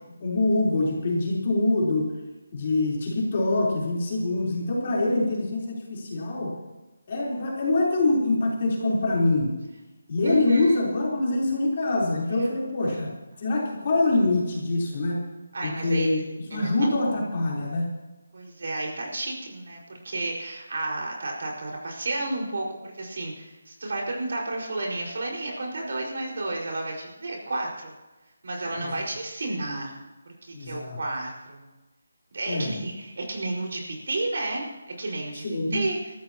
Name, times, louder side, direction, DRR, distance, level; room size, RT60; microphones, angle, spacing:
voice 1, 0.2-2.1 2.5-6.5 7.1-9.6 10.1-13.1 13.4-15.2 15.6-16.2 16.5-17.9 28.8-28.9 30.5-31.0 32.5-32.7 35.3-35.8, left 2 dB, 30° left, -4 dB, 3.9 m, -24 dB
voice 2, 10.2-10.8 12.4-12.5 12.9-13.0 15.5-16.2 16.5-16.7 18.3-27.9 28.4-30.0 30.4-31.7 32.3-35.4 35.7-36.0, right 2 dB, 55° right, -1 dB, 5.1 m, -31 dB
23.5 x 13.5 x 3.0 m, 1.1 s
hypercardioid pair, 175°, 0 cm